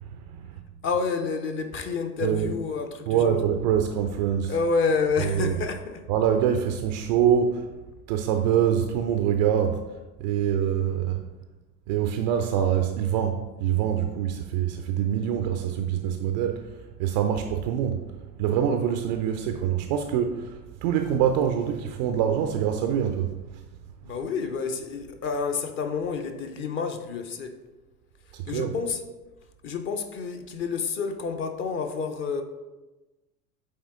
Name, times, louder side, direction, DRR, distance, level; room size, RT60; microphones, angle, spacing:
voice 1, 0.1-0.6 2.2-2.5 3.1-4.5 5.2-5.5 6.1-7.7 8.1-9.8 10.2-11.2 11.9-16.7 17.0-18.1 18.4-23.6 28.3-28.7, right 9 dB, 35° right, 6 dB, 0.4 m, -25 dB
voice 2, 0.8-3.4 4.5-6.0 24.0-27.5 28.5-29.0 29.6-32.4, left 5 dB, 25° left, 6 dB, 0.6 m, -29 dB
8.6 x 3.6 x 3.6 m, 1.1 s
figure-of-eight pair, 80°, 45 cm